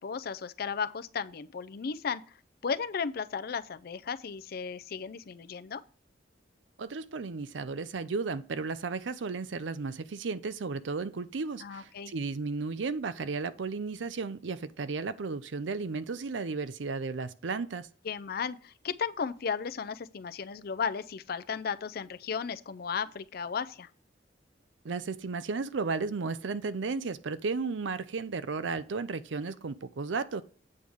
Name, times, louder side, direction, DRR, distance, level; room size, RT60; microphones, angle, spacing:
voice 1, 0.0-2.2 2.6-5.8 11.6-12.1 18.0-23.9, left 6 dB, 55° left, 0.5 m, -35 dB
voice 2, 6.8-17.9 24.8-30.4, right 4 dB, 85° right, 0.5 m, -34 dB
8.6 x 3.5 x 6.3 m
head